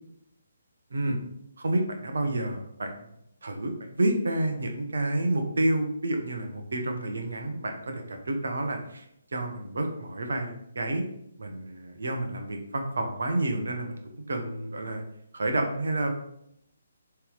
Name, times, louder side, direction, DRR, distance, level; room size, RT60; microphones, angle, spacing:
voice 1, 1.6-3.1 3.4-9.1 9.3-11.0 11.4-14.0 14.3-15.0 15.3-16.1, right 1 dB, 60° right, 4 dB, 1.2 m, -29 dB
7.2 x 3.4 x 4.0 m, 0.75 s
figure-of-eight pair, 135°, 0 cm